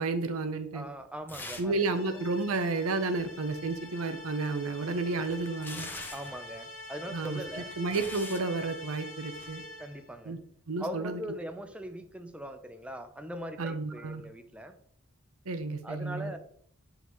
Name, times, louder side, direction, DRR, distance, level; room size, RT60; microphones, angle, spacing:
voice 1, 0.0-0.9 1.6-5.9 7.1-9.6 10.3-10.4 10.7-11.2 13.6-14.2 15.5-16.3, right 3 dB, 85° right, 9 dB, 0.6 m, -31 dB
voice 2, 0.7-1.8 6.1-7.7 9.8-10.4 10.8-14.8 15.8-16.4, equal, 5° right, 7 dB, 0.5 m, -41 dB
sound 1, 1.3-1.8 2.1-2.2 4.6-6.4 7.3-8.5 9.3-9.5, left 2 dB, 10° left, 0.9 m, -44 dB
sound 2, 1.6-10.1, left 2 dB, 65° left, 1.4 m, -46 dB
9.2 x 3.9 x 3.0 m, 0.65 s
head